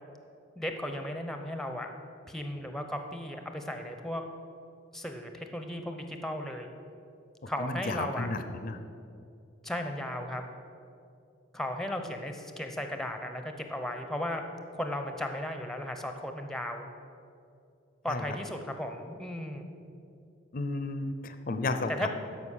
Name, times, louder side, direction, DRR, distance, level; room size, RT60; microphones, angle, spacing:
voice 1, 0.6-1.9 2.3-4.2 4.9-6.7 7.5-8.3 9.6-10.4 11.5-14.4 14.7-16.9 18.0-19.7 21.9-22.1, left 1 dB, ahead, 5 dB, 0.6 m, -35 dB
voice 2, 7.6-8.8 18.1-18.2 20.5-22.1, left 2 dB, 45° left, 9 dB, 0.5 m, -33 dB
13.0 x 5.3 x 6.4 m, 2.5 s
head